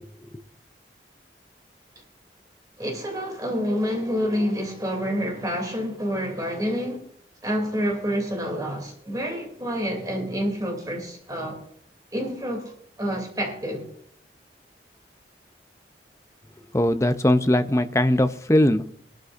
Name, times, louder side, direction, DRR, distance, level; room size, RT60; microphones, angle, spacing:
voice 1, 2.8-7.1 7.4-11.6 12.1-12.7 13.0-13.9, equal, 20° right, 3.0 m, -28 dB
voice 2, 16.7-18.8, left 1 dB, 15° left, 0.6 m, -20 dB
22.5 x 13.0 x 2.6 m
head